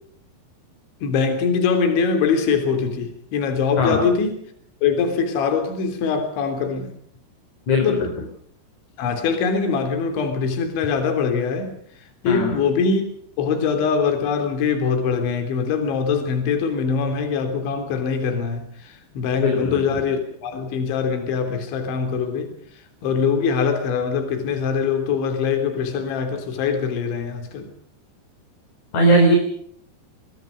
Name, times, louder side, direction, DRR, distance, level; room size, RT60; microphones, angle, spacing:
voice 1, 1.0-4.4 4.8-6.9 7.8-8.0 9.0-11.8 12.2-13.0 13.4-22.5 23.0-27.7, left 5 dB, 65° left, 5.5 m, -23 dB
voice 2, 7.7-8.1 12.2-12.6 19.4-19.8 28.9-29.4, equal, 40° left, 4.5 m, -18 dB
26.0 x 22.5 x 5.3 m
omnidirectional pair, 5.9 m